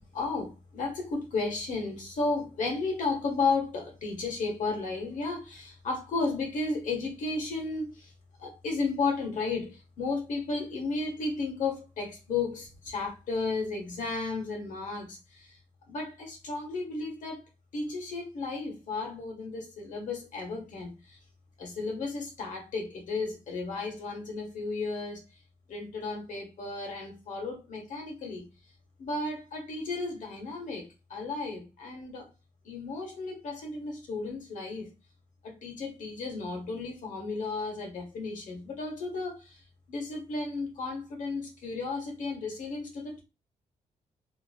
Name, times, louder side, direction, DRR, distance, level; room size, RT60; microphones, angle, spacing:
voice 1, 0.1-8.1 8.4-15.5 15.9-17.4 17.7-21.2 21.6-25.2 25.7-28.4 29.0-32.3 32.6-34.9 35.4-39.6 39.9-43.2, left 3 dB, 70° left, 1.2 m, -33 dB
2.8 x 2.6 x 2.4 m
cardioid pair, 120°, 14 cm